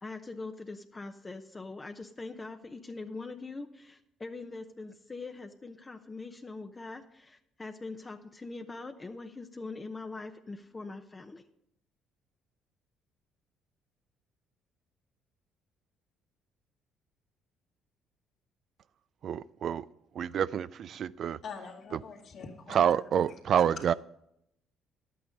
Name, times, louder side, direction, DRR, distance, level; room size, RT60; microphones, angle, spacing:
voice 1, 0.0-11.4, left 3 dB, 25° left, 0.8 m, -42 dB
voice 2, 19.2-19.9 20.1-21.4 22.7-23.9, right 9 dB, 60° right, 0.3 m, -28 dB
voice 3, 21.4-22.9 23.2-23.4 23.8-23.9, left 5 dB, 60° left, 2.1 m, -44 dB
11.0 x 8.6 x 5.2 m
supercardioid pair, 75°, 0 cm